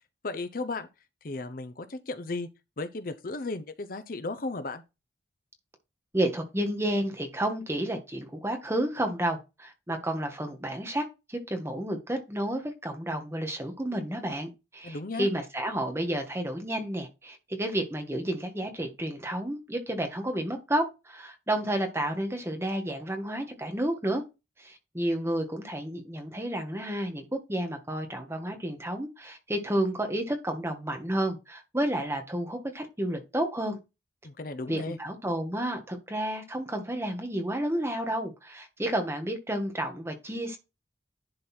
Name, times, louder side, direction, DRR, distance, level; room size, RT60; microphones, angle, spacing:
voice 1, 0.2-0.9 1.2-2.5 2.8-4.8 14.8-15.3 34.2-35.0, left 3 dB, 50° left, 0.7 m, -35 dB
voice 2, 6.1-24.2 24.6-33.8 34.7-40.6, right 1 dB, 15° right, 1.6 m, -31 dB
11.0 x 4.1 x 4.4 m
head